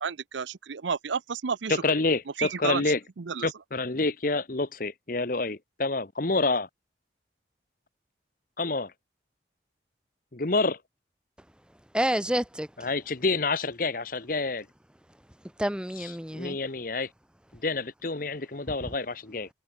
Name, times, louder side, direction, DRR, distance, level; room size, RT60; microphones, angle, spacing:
voice 1, 0.0-1.8 2.4-2.8 3.3-3.5, right 6 dB, 90° right, 0.7 m, -31 dB
voice 2, 1.7-3.0 3.4-6.7 8.6-8.9 10.3-10.8 12.8-14.6 16.3-17.1 17.6-19.5, left 3 dB, 50° left, 1.2 m, -28 dB
voice 3, 11.9-12.9 15.6-16.6 18.8-18.9, equal, 5° right, 1.1 m, -29 dB
head